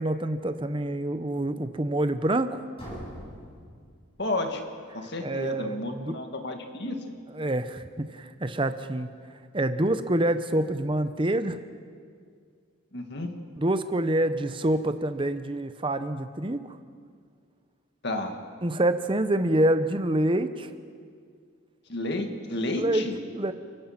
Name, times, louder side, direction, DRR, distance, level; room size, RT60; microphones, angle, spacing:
voice 1, 0.0-2.6 5.2-6.2 7.3-9.1 9.5-11.6 13.5-16.8 18.6-20.7 22.8-23.0 23.3-23.5, right 1 dB, 25° right, 10 dB, 0.8 m, -26 dB
sound 1, 2.8-4.6, equal, 25° left, 7.5 m, -43 dB
voice 2, 4.2-4.6 4.9-7.1 12.9-13.3 18.0-18.4 21.9-23.1, left 2 dB, 50° left, 5 dB, 2.0 m, -31 dB
30.0 x 16.0 x 5.9 m, 2.1 s
head